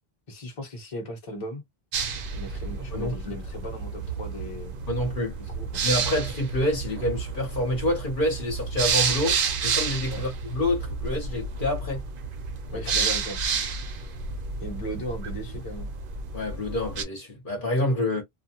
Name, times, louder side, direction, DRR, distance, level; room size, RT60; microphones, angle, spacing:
voice 1, 0.3-1.6 2.3-4.7 5.4-5.8 10.1-10.2 12.7-13.4 14.6-15.9, equal, 30° left, 1.1 m, -37 dB
sound 1, 1.9-17.0, right 5 dB, 60° right, 0.7 m, -30 dB
voice 2, 2.9-3.4 4.9-5.4 5.8-12.0 12.7-12.8 16.3-18.2, left 1 dB, 55° left, 1.2 m, -27 dB
2.4 x 2.2 x 2.7 m
omnidirectional pair, 1.1 m